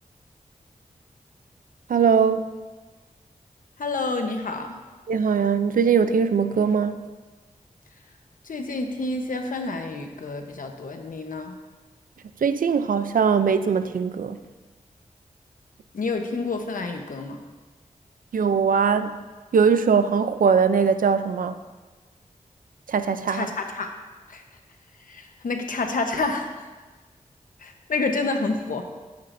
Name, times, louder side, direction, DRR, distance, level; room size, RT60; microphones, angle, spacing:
voice 1, 1.9-2.5 5.1-7.0 12.4-14.4 18.3-19.1 19.5-21.5 22.9-23.5, right 6 dB, 85° right, 10 dB, 0.5 m, -21 dB
voice 2, 3.8-4.8 8.4-11.6 15.9-17.4 23.3-23.9 24.3-24.4 25.1-26.5 27.6-28.8, left 3 dB, 80° left, 4 dB, 1.0 m, -28 dB
12.5 x 9.6 x 2.7 m, 1.3 s
cardioid pair, 50°, 14 cm